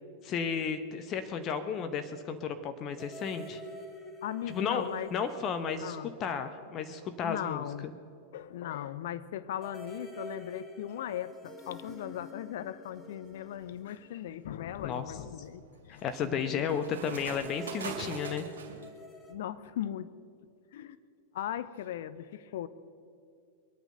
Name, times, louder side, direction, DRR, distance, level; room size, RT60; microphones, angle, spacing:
voice 1, 0.2-3.6 4.5-4.8 5.1-7.6 14.8-15.0 16.0-18.4, left 6 dB, 30° left, 8 dB, 1.0 m, -33 dB
sound 1, 3.0-6.7 7.0-7.1 9.6-15.0 17.3-19.3, equal, 10° left, 2.1 m, -48 dB
voice 2, 4.2-5.1 5.8-6.1 7.2-7.9 8.3-16.1 16.6-16.7 19.3-20.1 20.7-21.0 21.3-22.7, left 11 dB, 55° left, 13 dB, 0.7 m, -38 dB
sound 2, 13.3-13.7 14.3-18.9, right 6 dB, 65° right, 2.3 m, -44 dB
22.5 x 9.2 x 6.6 m, 2.5 s
figure-of-eight pair, 95°, 0 cm